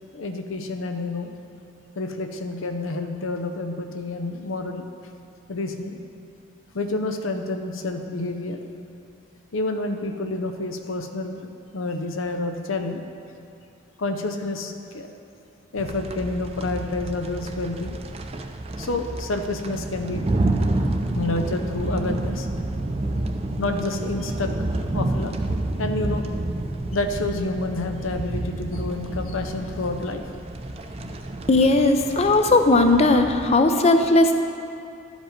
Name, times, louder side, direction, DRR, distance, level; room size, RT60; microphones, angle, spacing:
voice 1, 0.1-1.3 2.0-4.8 5.5-6.0 6.7-8.6 9.5-13.0 14.0-15.1 15.7-18.0 18.8-20.3 21.1-22.5 23.6-24.5 24.9-25.3 25.8-26.3 26.9-30.3 31.0-31.1, left 2 dB, 85° left, 6 dB, 0.7 m, -29 dB
sound 1, 15.8-33.6, right 2 dB, 30° right, 0.4 m, -29 dB
voice 2, 31.5-34.4, left 2 dB, 30° left, 6 dB, 0.5 m, -17 dB
12.0 x 5.1 x 5.1 m, 2.6 s
head